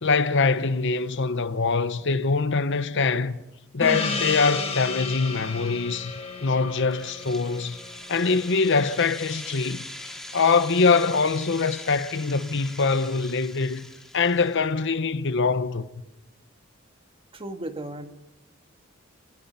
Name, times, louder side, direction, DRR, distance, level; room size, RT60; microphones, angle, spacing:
voice 1, 0.0-3.4 3.7-7.8 8.1-9.8 10.3-13.9 14.1-15.9, left 4 dB, 60° left, 0.9 m, -23 dB
Gong, 3.8-8.9, left 4 dB, 30° left, 3.0 m, -33 dB
sound 1, 6.8-14.6, left 1 dB, ahead, 2.5 m, -42 dB
voice 2, 17.3-18.1, right 1 dB, 25° right, 1.7 m, -35 dB
29.5 x 19.5 x 5.6 m
head